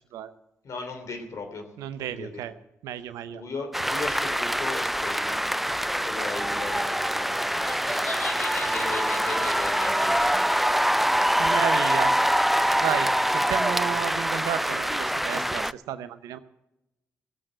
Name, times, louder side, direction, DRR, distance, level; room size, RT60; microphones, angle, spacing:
voice 1, 0.6-1.7 2.0-2.4 3.3-5.4 6.0-7.9 8.6-10.5, left 4 dB, 65° left, 6 dB, 3.1 m, -37 dB
voice 2, 1.8-2.5 2.8-3.4 11.4-12.2 12.8-16.4, right 10 dB, 80° right, 13 dB, 0.8 m, -32 dB
sound 1, 3.7-15.7, equal, 5° right, 0.4 m, -25 dB
Laughter, 7.5-13.1, left 1 dB, 35° left, 3.0 m, -38 dB
17.5 x 7.8 x 7.6 m, 0.91 s
hypercardioid pair, 45°, 6 cm